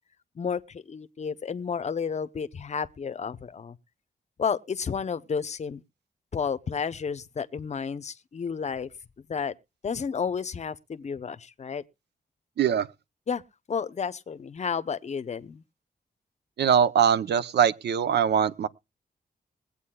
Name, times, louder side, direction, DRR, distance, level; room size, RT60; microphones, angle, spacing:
voice 1, 0.4-3.8 4.4-5.8 6.3-8.9 9.3-9.5 9.8-11.8 13.3-13.4 13.7-15.6, left 6 dB, 40° left, 0.6 m, -31 dB
voice 2, 12.6-12.9 16.6-18.7, right 8 dB, 80° right, 0.6 m, -22 dB
22.0 x 8.2 x 2.2 m
wide cardioid pair, 115°, 17 cm